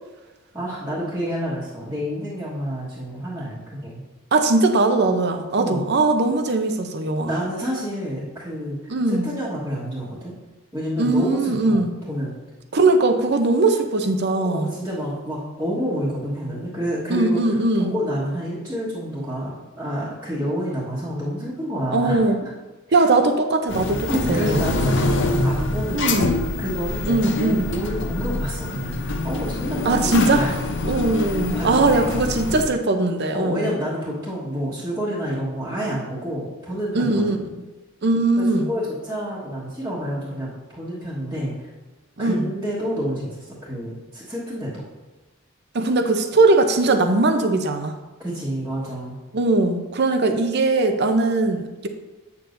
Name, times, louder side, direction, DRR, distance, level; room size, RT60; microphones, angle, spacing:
voice 1, 0.5-4.0 5.6-5.9 7.2-10.4 10.7-12.3 14.4-17.4 17.8-19.5 19.8-22.5 22.9-23.0 24.1-26.3 26.6-30.6 31.2-32.0 33.3-37.4 38.4-41.7 42.2-44.8 48.2-49.2, equal, 10° right, -12 dB, 1.4 m, -29 dB
voice 2, 4.3-7.4 8.9-9.3 11.0-11.9 12.7-14.7 17.1-17.9 21.9-22.4 22.9-24.7 25.9-26.4 27.0-27.6 29.8-30.4 30.8-33.7 36.9-37.4 38.0-38.7 42.2-42.5 45.7-48.0 49.3-51.9, right 2 dB, 50° right, 7 dB, 0.6 m, -20 dB
sound 1, 23.7-32.6, left 2 dB, 60° left, 0.6 m, -25 dB
8.3 x 6.9 x 2.6 m, 1.2 s
head